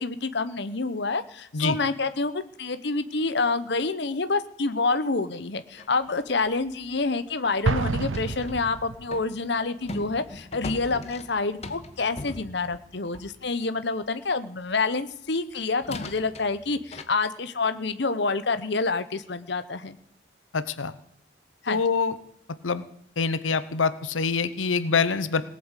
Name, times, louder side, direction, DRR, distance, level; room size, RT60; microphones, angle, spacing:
voice 1, 0.0-20.0 21.6-21.8, left 3 dB, 60° left, 12 dB, 1.0 m, -27 dB
sound 1, 5.7-8.6 9.1-13.5 15.2-15.3 15.8-17.0, left 1 dB, 35° left, 1.3 m, -41 dB
Explosion, 7.6-9.2, right 4 dB, 85° right, 0.5 m, -28 dB
voice 2, 20.5-20.9 21.7-22.2 22.6-22.8 23.2-25.4, left 5 dB, 85° left, 13 dB, 0.9 m, -25 dB
18.5 x 8.6 x 8.2 m, 0.74 s
head